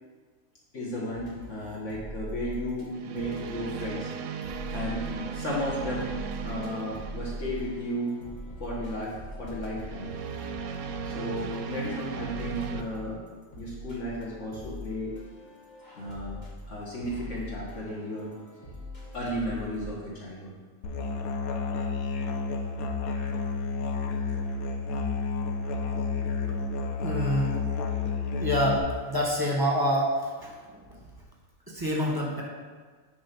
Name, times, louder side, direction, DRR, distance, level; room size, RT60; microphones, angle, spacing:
voice 1, 0.7-4.1 4.7-6.1 6.4-8.2 8.6-10.1 11.0-13.2 13.6-15.1 15.9-16.4 16.7-18.3 19.1-20.5, equal, 60° left, -5 dB, 1.7 m, -34 dB
sound 1, 0.9-1.3 2.9-8.0 9.8-12.8, right 6 dB, 70° right, 0.8 m, -37 dB
sound 2, 1.2-2.9 3.2-19.9, equal, 35° left, 1.3 m, -42 dB
Musical instrument, 20.8-28.8, left 4 dB, 80° left, 1.2 m, -30 dB
voice 2, 27.0-27.6 28.4-31.0 31.7-32.4, equal, 15° right, -3 dB, 1.1 m, -27 dB
8.9 x 3.3 x 5.9 m, 1.5 s
omnidirectional pair, 1.5 m